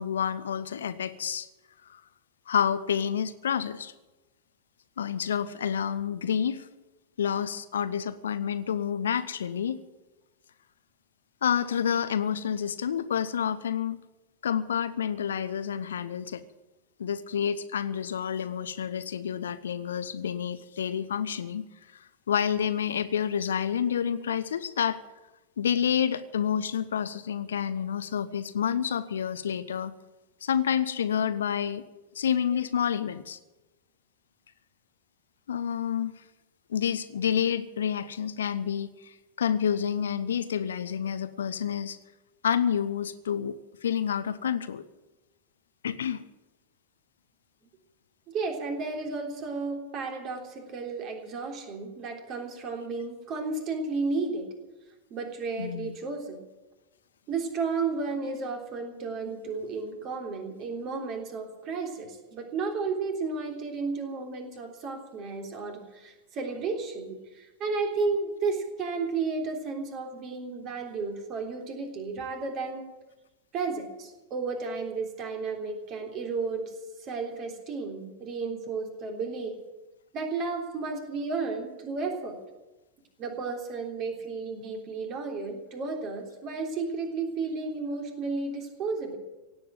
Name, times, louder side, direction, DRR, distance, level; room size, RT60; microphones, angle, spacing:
voice 1, 0.0-1.5 1.9-2.0 2.5-3.9 5.0-6.7 7.2-9.8 11.4-14.0 14.4-16.4 17.0-21.6 22.3-25.0 25.6-29.9 30.4-31.8 32.1-33.4 35.5-36.1 36.7-42.0 42.4-44.8 45.8-46.2 55.6-55.9, left 8 dB, 65° left, 13 dB, 0.8 m, -29 dB
voice 2, 48.3-54.5 55.1-56.4 57.3-72.8 73.5-76.7 77.0-79.6 80.1-82.3 83.2-89.2, right 4 dB, 35° right, 3 dB, 3.4 m, -33 dB
17.0 x 9.0 x 9.2 m, 1.1 s
figure-of-eight pair, 90°, 0 cm